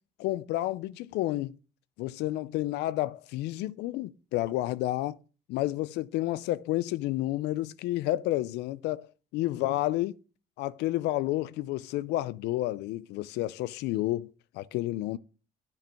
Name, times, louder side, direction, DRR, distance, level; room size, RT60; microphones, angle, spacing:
voice 1, 0.2-1.5 2.0-5.2 5.5-9.1 9.3-10.2 10.6-15.2, left 16 dB, 85° left, 0.4 m, -30 dB
10.5 x 4.9 x 3.5 m
cardioid pair, 110°, 17 cm